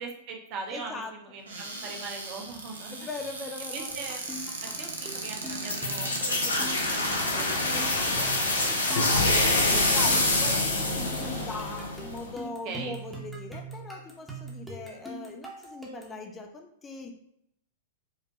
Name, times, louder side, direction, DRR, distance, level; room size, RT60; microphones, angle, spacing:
voice 1, 0.0-1.0 1.3-3.1 3.7-4.2 4.6-7.5 12.6-13.0, right 4 dB, 40° right, 2 dB, 0.8 m, -40 dB
voice 2, 0.7-1.1 1.8-1.9 2.9-3.9 6.4-7.0 7.4-17.1, left 3 dB, 20° left, 4 dB, 0.5 m, -41 dB
Cupboard open or close, 1.4-11.8 12.5-12.6 12.8-13.2, right 2 dB, 75° right, 0.7 m, -39 dB
sound 1, 3.9-16.2, right 2 dB, 5° right, 0.8 m, -42 dB
sound 2, 5.7-12.3, left 2 dB, 85° left, 0.6 m, -26 dB
4.7 x 2.2 x 2.9 m, 0.73 s
figure-of-eight pair, 100°, 0 cm